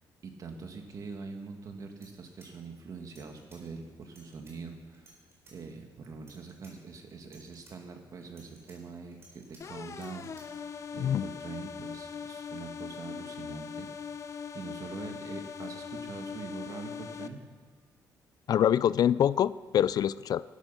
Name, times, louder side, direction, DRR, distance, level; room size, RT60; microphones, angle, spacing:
voice 1, 0.2-5.1 5.5-10.7 10.9-13.9 14.5-17.5, right 4 dB, 50° right, 4 dB, 2.1 m, -44 dB
sound 1, 1.9-3.6 4.0-4.5 4.9-5.6 6.1-6.7 7.1-7.7 8.2-9.6 9.9-10.4, right 2 dB, 35° right, 4.8 m, -58 dB
sound 2, 9.6-17.3, left 6 dB, 40° left, 0.8 m, -41 dB
voice 2, 18.5-20.4, left 10 dB, 55° left, 18 dB, 0.4 m, -25 dB
17.0 x 12.5 x 5.9 m, 1.5 s
cardioid pair, 125°, 8 cm